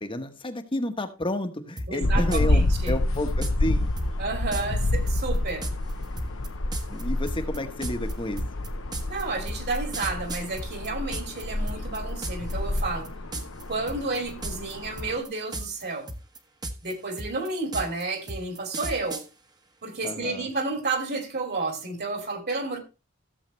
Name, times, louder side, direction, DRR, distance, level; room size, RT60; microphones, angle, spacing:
voice 1, 0.0-3.9 6.9-8.4 20.0-20.5, left 1 dB, 25° left, 1.2 m, -31 dB
sound 1, 1.8-1.9 2.3-2.5 2.9-3.6 4.0-4.1 4.5-4.7 5.1-11.4 11.7-12.5 12.8-13.1 13.3-13.6 13.9-14.7 15.0-15.8 16.1-19.3, right 1 dB, 20° right, 1.2 m, -34 dB
voice 2, 1.9-3.0 4.2-5.7 9.1-13.1 13.7-16.1 16.8-19.2 19.8-22.8, right 3 dB, 50° right, 2.7 m, -31 dB
sound 2, 2.0-15.2, left 1 dB, 70° left, 0.9 m, -28 dB
15.5 x 7.4 x 3.2 m
head